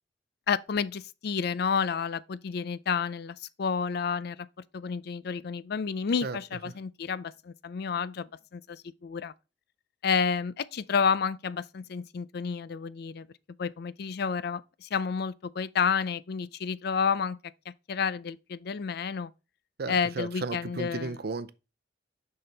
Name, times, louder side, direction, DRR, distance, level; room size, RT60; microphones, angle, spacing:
voice 1, 0.5-4.5 4.7-9.3 10.0-13.3 13.6-17.4 17.9-19.3 19.9-21.2, left 6 dB, 65° left, 0.4 m, -30 dB
voice 2, 19.8-21.5, right 3 dB, 60° right, 0.6 m, -34 dB
6.7 x 5.8 x 3.3 m
head